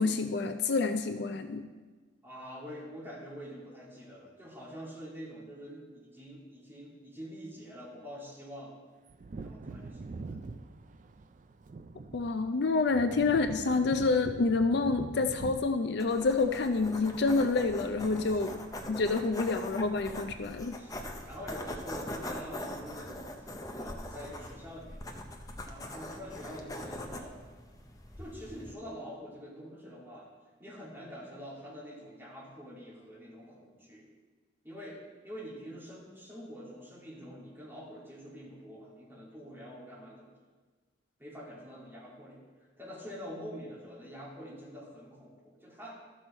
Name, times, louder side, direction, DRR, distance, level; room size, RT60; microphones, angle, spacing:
voice 1, 0.0-1.7 12.1-18.5 18.9-20.8, left 3 dB, 55° left, 8 dB, 0.4 m, -28 dB
voice 2, 2.2-8.8 9.4-10.4 18.3-18.6 19.2-19.4 20.8-25.0 25.6-27.4 28.2-30.3 30.6-34.0 34.6-40.3 41.2-46.0, equal, 10° right, -7 dB, 2.5 m, -46 dB
Wind / Thunder, 9.1-17.3 17.6-17.7, right 3 dB, 40° right, 0.3 m, -44 dB
sound 1, 16.0-28.7, left 1 dB, 20° left, 0.6 m, -42 dB
13.0 x 6.1 x 4.3 m, 1.3 s
head